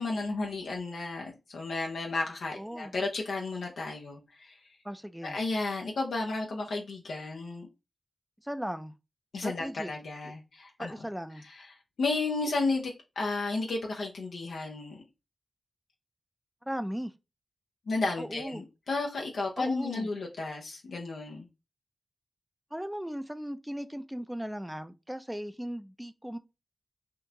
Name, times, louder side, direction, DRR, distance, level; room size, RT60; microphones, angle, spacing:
voice 1, 0.0-4.6 5.2-7.7 9.3-10.9 11.4-15.0 17.9-21.5, left 3 dB, 85° left, 0.6 m, -33 dB
voice 2, 2.5-2.9 4.8-5.4 8.4-8.9 9.4-9.9 10.8-11.4 16.7-17.1 18.2-18.6 19.6-20.1 22.7-26.4, equal, 5° right, 0.4 m, -37 dB
3.6 x 2.4 x 2.7 m
cardioid pair, 45°, 0 cm